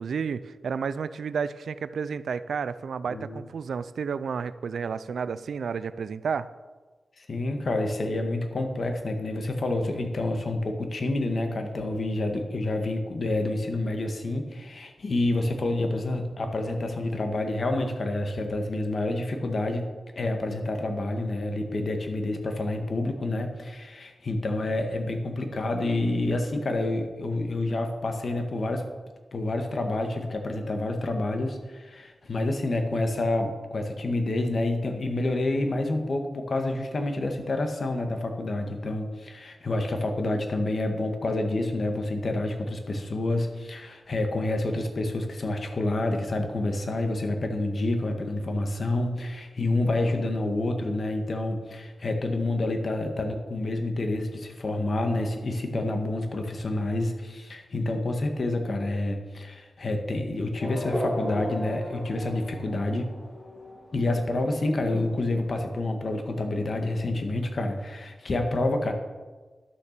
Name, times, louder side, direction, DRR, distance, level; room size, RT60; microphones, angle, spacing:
voice 1, 0.0-6.5, right 6 dB, 85° right, 15 dB, 0.4 m, -31 dB
voice 2, 3.1-3.4 7.2-19.9 20.2-28.9 29.3-63.1 63.9-68.9, left 2 dB, 55° left, 5 dB, 1.7 m, -28 dB
Race car auto racing / Accelerating revving vroom, 60.6-66.7, equal, 35° left, 2.7 m, -37 dB
11.5 x 7.0 x 6.7 m, 1.3 s
wide cardioid pair, 80°, 0 cm